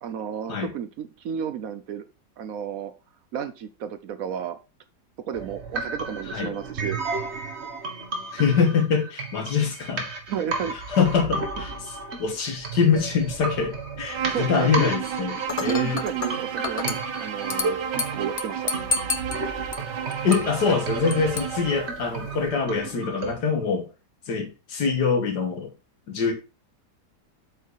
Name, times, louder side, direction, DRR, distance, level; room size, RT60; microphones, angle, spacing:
voice 1, 0.0-2.0 2.4-2.9 3.3-4.6 5.2-7.0 10.3-11.0 14.3-14.9 15.6-18.7 20.3-20.4, right 8 dB, 65° right, 1.0 m, -32 dB
sound 1, 5.3-23.3, right 3 dB, 40° right, 1.7 m, -33 dB
voice 2, 8.3-10.1 10.9-16.0 20.2-23.9 24.3-25.7 26.1-26.3, left 5 dB, 75° left, 2.1 m, -24 dB
Bowed string instrument, 14.1-22.0, right 9 dB, 85° right, 1.4 m, -33 dB
Dishes pots and pans / Glass, 15.5-22.5, left 4 dB, 50° left, 0.4 m, -33 dB
7.9 x 4.8 x 4.7 m
omnidirectional pair, 1.8 m